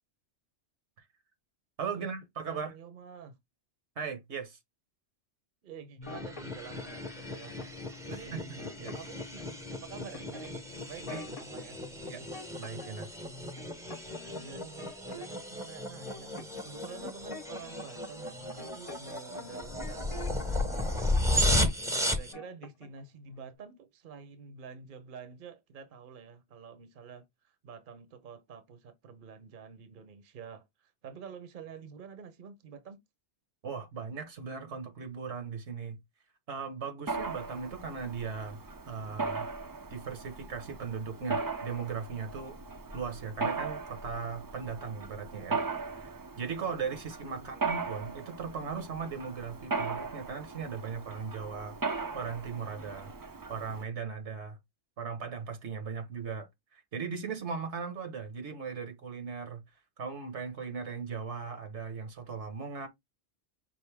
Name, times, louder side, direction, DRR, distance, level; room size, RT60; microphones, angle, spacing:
voice 1, 1.8-2.7 4.0-4.6 8.1-8.9 11.1-11.2 12.1-12.2 12.6-13.1 33.6-36.0 36.5-38.6 38.9-39.5 39.9-42.6 42.9-45.6 45.9-54.6 55.0-59.6 60.0-62.9, right 5 dB, 85° right, 1.5 m, -38 dB
voice 2, 2.5-3.4 5.6-7.6 8.1-8.3 8.9-12.3 14.3-21.5 21.8-33.0 47.3-47.7, right 6 dB, 55° right, 0.9 m, -48 dB
sound 1, 6.0-7.0 7.6-7.9 8.2-9.5 10.1-11.7 12.0-13.0 13.2-15.5 15.8-20.6 21.0-21.7 22.0-23.0 23.3-23.5, left 2 dB, 35° left, 0.7 m, -47 dB
sound 2, 6.0-22.3, left 1 dB, 5° right, 0.7 m, -34 dB
Mechanisms, 37.1-53.8, right 4 dB, 30° right, 0.4 m, -38 dB
5.5 x 2.6 x 3.4 m
omnidirectional pair, 1.1 m